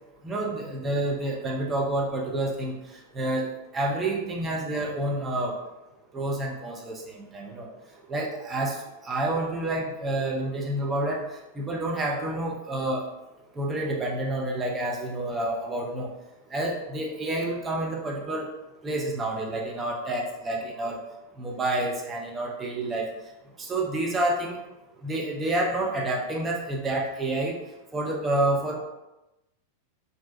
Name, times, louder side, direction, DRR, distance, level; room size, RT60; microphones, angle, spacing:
voice 1, 0.2-2.7 3.1-3.5 3.7-5.5 6.1-7.7 8.1-8.8 9.0-11.2 11.6-13.0 13.6-16.1 16.5-18.5 18.8-21.0 21.4-23.1 23.6-24.6 25.0-27.6 27.9-28.7, right 1 dB, 20° right, -1 dB, 0.5 m, -28 dB
2.6 x 2.1 x 2.4 m, 0.96 s
figure-of-eight pair, 90°, 0 cm